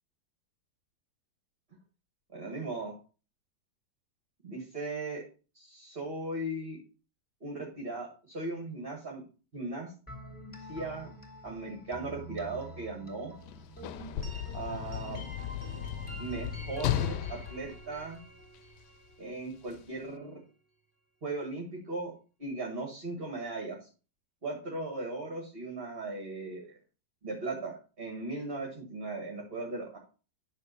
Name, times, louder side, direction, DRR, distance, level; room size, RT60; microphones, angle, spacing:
voice 1, 2.3-2.9 4.4-5.2 5.5-6.8 7.4-9.2 9.5-9.9 10.7-11.1 11.4-13.3 14.5-15.2 16.2-18.2 19.2-20.4 21.2-22.1 22.4-23.9 24.4-26.6 27.2-30.0, right 2 dB, 35° right, 0 dB, 2.0 m, -37 dB
sound 1, 10.1-19.8, right 2 dB, 5° left, 3.0 m, -47 dB
Sliding door / Slam, 13.4-18.8 19.7-19.8, left 12 dB, 80° left, 1.2 m, -36 dB
10.0 x 3.5 x 6.7 m, 0.35 s
omnidirectional pair, 1.8 m